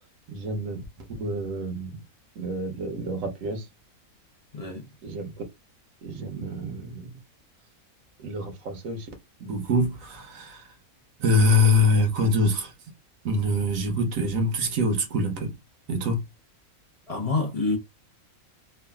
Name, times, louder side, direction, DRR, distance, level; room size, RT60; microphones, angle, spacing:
voice 1, 0.3-0.8 1.1-2.0 2.4-3.7 5.0-5.3 6.0-7.2 8.2-9.1 9.4-10.7 11.2-12.7 13.2-15.5 15.9-16.2, left 1 dB, 70° right, 1.2 m, -25 dB
voice 2, 4.5-4.9 17.1-17.8, left 3 dB, 45° left, 0.5 m, -27 dB
3.2 x 2.3 x 2.2 m
omnidirectional pair, 1.5 m